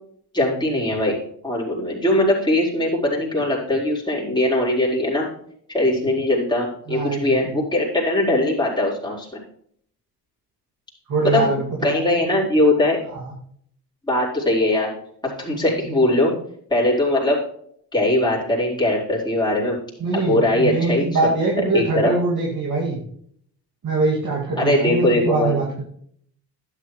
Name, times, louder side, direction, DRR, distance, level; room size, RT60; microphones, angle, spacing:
voice 1, 0.3-1.2 1.4-5.3 5.7-9.3 11.2-11.5 11.8-13.0 14.1-14.9 15.2-16.3 16.7-17.4 17.9-19.8 20.1-21.2 21.7-22.1 24.6-25.5, left 1 dB, 10° left, -5 dB, 4.5 m, -20 dB
voice 2, 6.9-7.6 11.1-12.0 13.1-13.2 20.0-23.0 23.8-25.8, right 3 dB, 45° right, -4 dB, 2.5 m, -23 dB
12.0 x 10.5 x 3.3 m, 0.65 s
cardioid pair, 105°, 41 cm